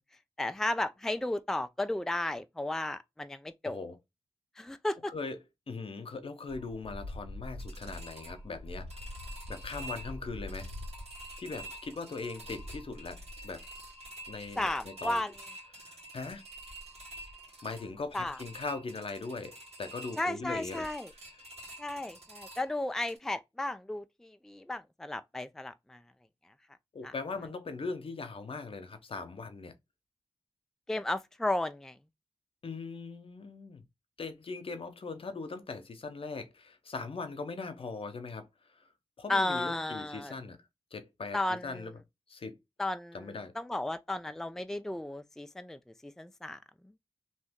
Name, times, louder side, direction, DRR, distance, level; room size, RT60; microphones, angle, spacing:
voice 1, 0.4-3.8 4.6-5.1 14.6-15.3 18.1-18.4 20.2-21.1 21.8-26.0 27.0-27.1 30.9-32.0 39.3-40.3 41.3-41.9 42.8-46.6, left 1 dB, 5° left, 0.4 m, -34 dB
voice 2, 3.6-4.0 5.1-5.4 5.7-9.2 9.5-10.7 11.4-13.6 14.3-15.2 15.8-16.4 17.6-19.5 19.8-20.9 26.9-29.7 32.6-33.8 34.2-38.8 39.2-40.6 40.9-41.4 41.6-41.9 42.3-42.6 43.1-43.5, left 4 dB, 60° left, 0.7 m, -40 dB
sound 1, 6.5-23.2, equal, 85° right, 1.7 m, -46 dB
2.7 x 2.6 x 3.4 m
cardioid pair, 45°, 10 cm